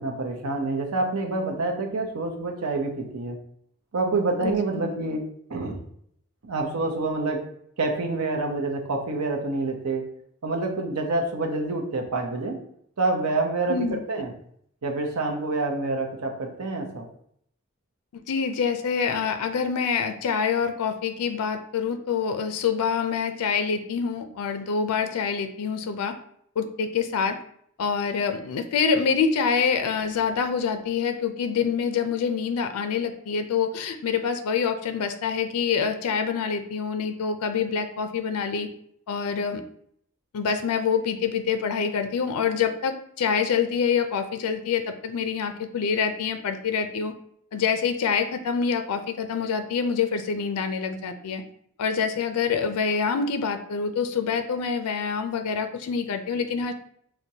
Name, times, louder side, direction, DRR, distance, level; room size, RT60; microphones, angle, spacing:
voice 1, 0.0-3.4 3.9-5.2 5.5-5.8 6.4-7.4 7.8-10.0 10.4-12.6 13.0-14.3 14.8-17.1, right 2 dB, 80° right, 2 dB, 0.7 m, -27 dB
voice 2, 13.7-14.2 18.1-26.1 26.6-27.4 27.8-38.7 39.1-39.6 40.3-47.1 47.5-51.4 51.8-56.7, left 6 dB, 90° left, 7 dB, 0.4 m, -26 dB
5.9 x 2.1 x 2.7 m, 0.67 s
head